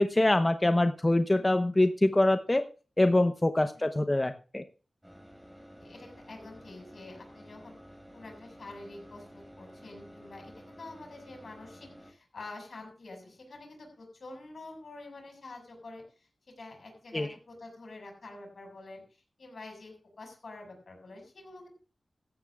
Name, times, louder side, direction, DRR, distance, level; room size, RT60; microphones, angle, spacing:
voice 1, 0.0-2.7 3.0-4.6 17.1-17.3, left 1 dB, 25° left, 7 dB, 0.9 m, -24 dB
voice 2, 3.5-3.9 5.8-7.8 8.1-16.0 16.5-21.7, left 2 dB, 75° left, 3 dB, 6.5 m, -47 dB
sound 1, 5.0-12.1, equal, 5° right, 5.7 m, -51 dB
17.0 x 14.0 x 2.4 m, 0.36 s
wide cardioid pair, 60°, 0 cm